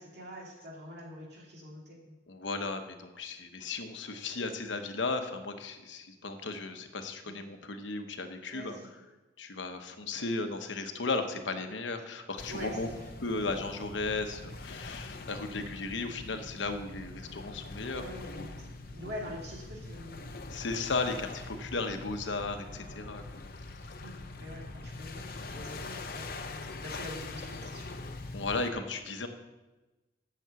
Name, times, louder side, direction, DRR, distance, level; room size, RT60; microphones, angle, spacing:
voice 1, 0.0-2.0 7.2-7.4 8.5-8.9 12.5-13.0 17.9-18.6 18.9-20.5 24.0-26.3 26.8-27.9, equal, 60° right, -2 dB, 2.6 m, -44 dB
voice 2, 2.3-8.8 9.4-12.9 13.2-18.5 20.5-23.2 28.3-29.3, left 3 dB, 80° left, 6 dB, 1.0 m, -35 dB
sound 1, 12.4-28.7, left 3 dB, 55° left, 0.7 m, -43 dB
7.5 x 7.0 x 8.1 m, 1.1 s
head